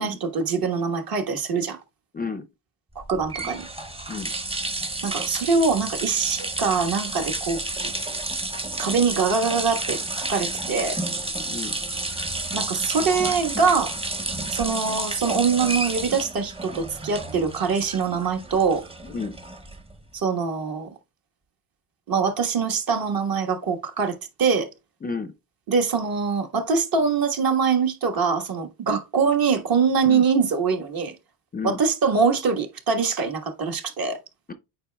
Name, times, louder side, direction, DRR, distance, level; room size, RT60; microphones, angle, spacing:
voice 1, 0.0-1.8 3.1-3.6 5.0-7.6 8.8-10.0 10.3-11.0 12.5-13.9 14.5-18.8 20.1-20.9 22.1-24.7 25.7-31.1 31.6-34.2, right 5 dB, 50° right, 1.4 m, -23 dB
voice 2, 2.1-2.5 4.1-4.3 11.5-11.7 19.0-19.3 25.0-25.3 30.0-30.2 31.5-31.8, left 5 dB, 20° left, 0.4 m, -31 dB
sound 1, 3.0-20.0, right 2 dB, 15° right, 0.8 m, -31 dB
8.6 x 4.9 x 2.2 m
supercardioid pair, 90°, 45 cm